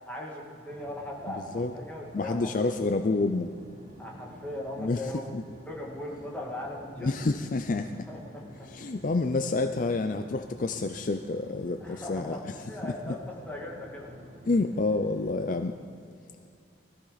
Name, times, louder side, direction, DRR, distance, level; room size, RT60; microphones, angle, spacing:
voice 1, 0.1-2.6 4.0-5.3 5.7-7.3 8.1-8.7 11.8-14.2, left 1 dB, 10° left, -3 dB, 2.1 m, -39 dB
sound 1, 0.7-15.6, equal, 45° right, 1.8 m, -50 dB
voice 2, 1.3-1.7 2.1-3.5 4.8-5.4 7.0-8.1 8.7-12.4 12.8-13.1 14.5-15.7, left 3 dB, 45° left, 7 dB, 0.4 m, -28 dB
20.0 x 14.5 x 4.1 m, 2.4 s
head